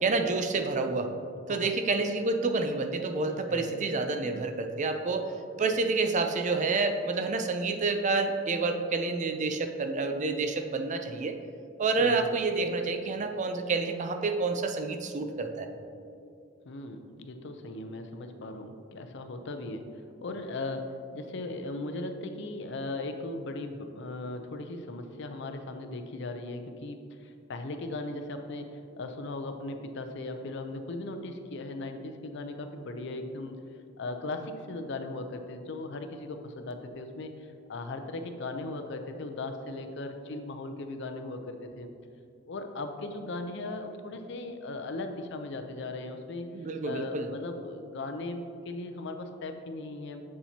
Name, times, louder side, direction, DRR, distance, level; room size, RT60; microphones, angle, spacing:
voice 1, 0.0-1.1 1.5-5.2 5.6-11.4 11.8-15.7 46.5-47.3, right 3 dB, 40° right, 6 dB, 0.5 m, -28 dB
voice 2, 3.5-3.8 12.0-12.3 16.7-19.9 20.2-33.6 34.0-41.9 42.5-46.5 46.8-50.2, left 2 dB, 65° left, 7 dB, 0.6 m, -38 dB
7.4 x 7.1 x 2.8 m, 2.5 s
head